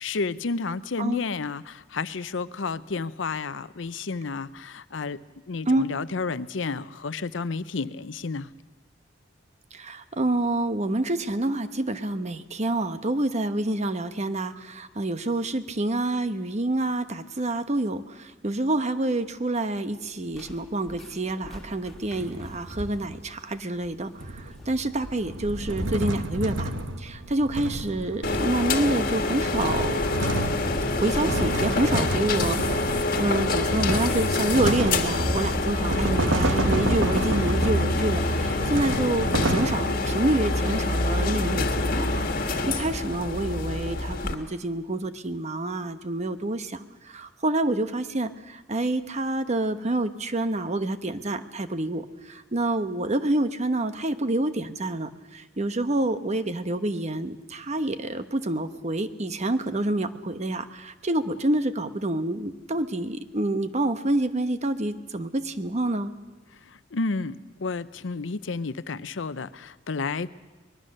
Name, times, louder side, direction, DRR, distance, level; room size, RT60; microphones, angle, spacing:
voice 1, 0.0-5.2 5.5-8.5 66.6-70.3, left 4 dB, 75° left, 15 dB, 0.7 m, -31 dB
voice 2, 9.7-26.7 27.0-30.0 30.9-66.1, right 2 dB, 35° right, 10 dB, 1.0 m, -27 dB
sound 1, 19.9-27.4, equal, ahead, 4.3 m, -45 dB
sound 2, 21.9-23.2 24.2-28.8 29.3-39.8, right 1 dB, 80° right, 1.3 m, -30 dB
sound 3, 28.2-44.3, left 2 dB, 50° left, 1.8 m, -26 dB
24.5 x 20.5 x 6.6 m, 1.2 s
head